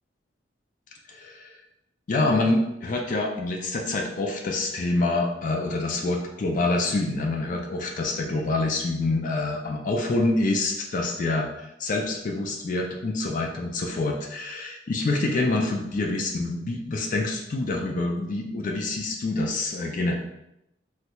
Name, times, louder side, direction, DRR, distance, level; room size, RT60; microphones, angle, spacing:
voice 1, 1.1-1.6 2.1-20.1, left 2 dB, 45° left, 2 dB, 0.4 m, -26 dB
3.1 x 2.3 x 2.9 m, 0.85 s
head